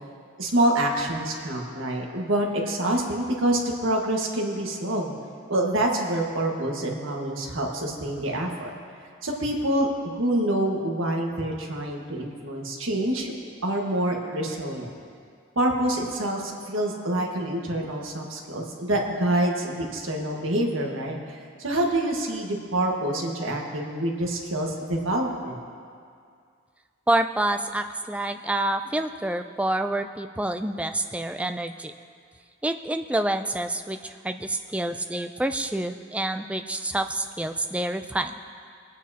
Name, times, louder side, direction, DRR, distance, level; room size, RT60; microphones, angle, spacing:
voice 1, 0.4-5.1 5.5-8.7 9.2-13.3 13.6-14.9 15.5-25.6, right 1 dB, 80° right, 0 dB, 1.6 m, -26 dB
voice 2, 27.1-31.9 32.6-38.3, right 1 dB, 5° right, 7 dB, 0.3 m, -27 dB
23.5 x 9.2 x 2.9 m, 2.2 s
head